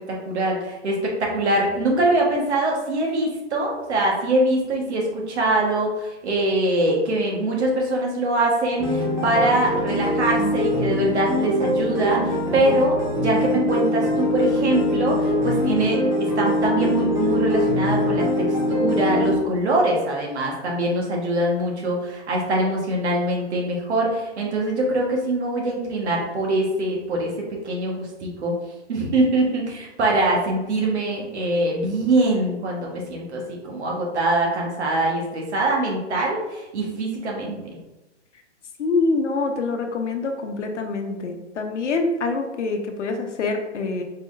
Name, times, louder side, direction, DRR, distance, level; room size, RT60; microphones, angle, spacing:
voice 1, 0.1-28.5 28.9-37.6, right 1 dB, 70° right, -1 dB, 1.5 m, -23 dB
sound 1, 8.8-19.3, left 1 dB, 10° right, 0.4 m, -23 dB
voice 2, 38.8-44.0, left 3 dB, 80° left, 4 dB, 0.9 m, -25 dB
4.4 x 3.7 x 2.6 m, 1.0 s
hypercardioid pair, 140°, 35 cm